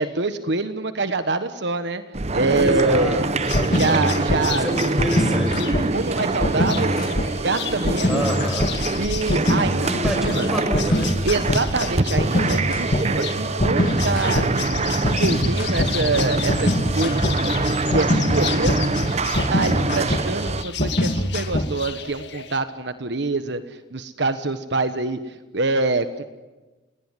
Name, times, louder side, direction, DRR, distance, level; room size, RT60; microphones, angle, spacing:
voice 1, 0.0-2.0 2.3-3.3 3.7-4.7 5.9-7.0 7.4-8.2 9.0-9.9 10.1-10.5 11.2-14.4 14.9-17.5 17.9-19.0 19.3-26.2, right 3 dB, 65° right, 11 dB, 1.3 m, -25 dB
sound 1, 2.1-20.6, right 3 dB, 35° right, 0.9 m, -25 dB
voice 2, 2.5-4.0 4.5-5.7 8.1-8.7 9.9-11.1, equal, ahead, 4 dB, 6.1 m, -28 dB
sound 2, 3.4-22.6, left 10 dB, 65° left, 1.9 m, -35 dB
sound 3, 3.5-4.4 5.0-5.9 6.4-7.3 7.8-8.7 9.3-10.2 10.7-11.6 12.2-13.0 13.6-21.9, left 1 dB, 45° left, 2.2 m, -23 dB
30.0 x 18.5 x 9.8 m, 1.2 s
head